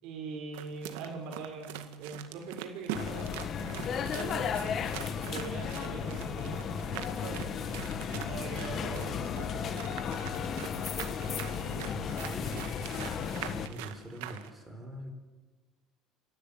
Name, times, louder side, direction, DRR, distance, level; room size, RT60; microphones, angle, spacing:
voice 1, 0.0-4.7 5.2-7.4 8.2-10.0 10.3-11.2 11.5-11.8, right 4 dB, 65° right, 0 dB, 4.6 m, -43 dB
sound 1, 0.5-14.5, right 11 dB, 85° right, 1.9 m, -43 dB
sound 2, 2.9-13.7, left 7 dB, 35° left, 1.4 m, -34 dB
voice 2, 7.8-8.3 11.9-12.8 13.5-15.1, right 1 dB, 10° right, 2 dB, 5.4 m, -44 dB
29.0 x 12.5 x 9.0 m, 1.3 s
cardioid pair, 135°, 0 cm